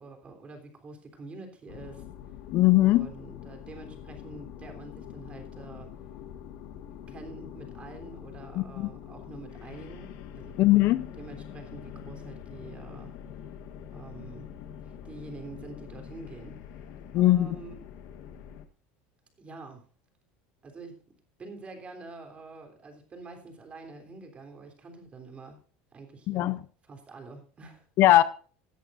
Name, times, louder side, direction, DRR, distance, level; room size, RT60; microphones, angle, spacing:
voice 1, 0.0-2.0 2.8-5.9 7.1-10.8 11.2-13.1 13.9-14.5 14.8-16.6 17.1-17.7 19.4-19.8 20.6-21.0 21.4-25.6 25.9-26.6 26.8-27.8, right 3 dB, 25° right, 3.4 m, -46 dB
sound 1, 1.7-18.6, left 9 dB, 70° left, 1.3 m, -44 dB
voice 2, 2.5-3.1 8.6-8.9 10.6-11.1 17.1-17.6 26.3-26.6 28.0-28.2, left 16 dB, 55° left, 0.6 m, -20 dB
17.0 x 11.0 x 2.6 m
supercardioid pair, 125°, 5 cm